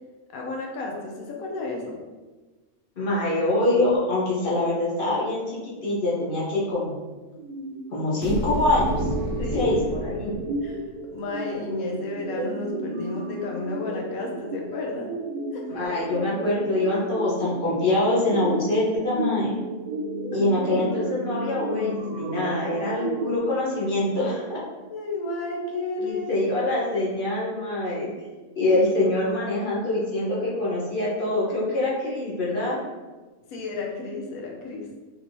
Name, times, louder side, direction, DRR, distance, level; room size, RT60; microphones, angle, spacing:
voice 1, 0.3-2.0 9.4-9.7 10.6-10.8 11.1-15.1 15.5-15.6 20.3-20.4 24.9-26.3 33.5-34.8, left 3 dB, 85° left, 0 dB, 1.1 m, -32 dB
voice 2, 3.0-7.0 7.9-9.1 9.5-10.3 15.7-19.5 20.3-24.6 26.0-28.1 28.6-32.8, left 2 dB, 45° left, -6 dB, 1.0 m, -24 dB
sound 1, 7.4-23.4, right 2 dB, 75° right, 1.0 m, -33 dB
sound 2, 8.2-11.0, left 1 dB, 65° left, 0.8 m, -31 dB
3.3 x 2.9 x 2.7 m, 1.3 s
omnidirectional pair, 1.5 m